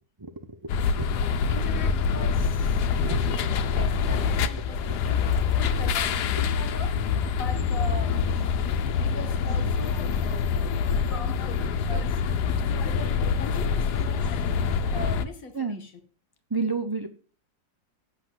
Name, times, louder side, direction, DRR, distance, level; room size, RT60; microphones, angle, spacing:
voice 1, 0.2-1.1 2.9-3.2 5.8-5.9 15.5-15.8 16.5-17.1, right 4 dB, 35° right, 7 dB, 0.4 m, -31 dB
sound 1, 0.7-15.3, left 6 dB, 85° left, 1.3 m, -25 dB
voice 2, 1.5-5.2 5.6-7.0 7.4-8.2 9.0-10.7 11.0-12.2 12.7-14.5 14.9-15.9, left 2 dB, 60° left, 7 dB, 2.2 m, -40 dB
8.1 x 6.9 x 7.7 m, 0.40 s
omnidirectional pair, 1.7 m